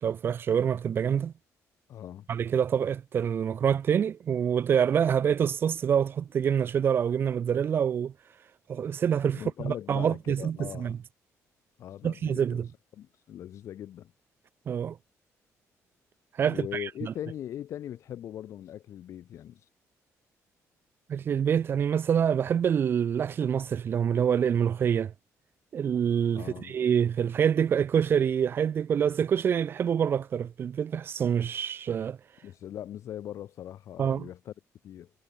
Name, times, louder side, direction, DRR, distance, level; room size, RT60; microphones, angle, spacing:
voice 1, 0.0-1.3 2.3-8.1 8.7-11.0 12.0-12.7 14.7-15.0 16.4-16.9 21.1-25.1 25.7-32.2 34.0-34.3, right 8 dB, 40° right, 1.0 m, -26 dB
voice 2, 1.9-2.3 9.3-11.0 11.8-12.6 12.9-14.1 16.4-19.6 26.4-26.8 32.4-34.5 34.8-35.1, left 11 dB, 60° left, 1.9 m, -40 dB
cardioid pair, 170°, 6 cm